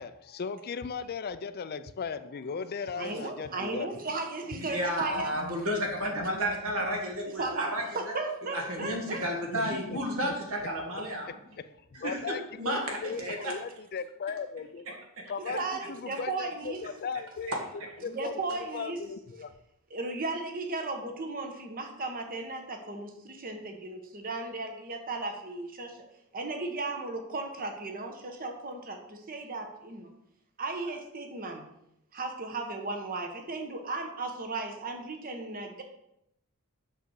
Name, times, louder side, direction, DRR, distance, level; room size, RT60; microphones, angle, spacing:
voice 1, 0.0-3.9 4.6-4.7 5.3-5.6 6.2-6.3 8.8-8.9 9.2-10.3 11.6-11.7 11.9-14.9 15.3-17.6 18.0-18.3 18.6-19.5, left 5 dB, 45° left, 12 dB, 0.4 m, -37 dB
voice 2, 3.0-5.3 7.4-9.2 15.5-16.8 18.0-19.0 19.9-26.0 26.3-30.1 30.6-31.6 32.1-35.8, right 3 dB, 40° right, 5 dB, 1.2 m, -35 dB
voice 3, 4.7-8.1 8.5-11.3 12.0-13.5 14.9-15.0 15.5-15.6 17.5-17.6, equal, 65° right, 0 dB, 2.1 m, -32 dB
8.0 x 6.4 x 4.8 m, 0.79 s
head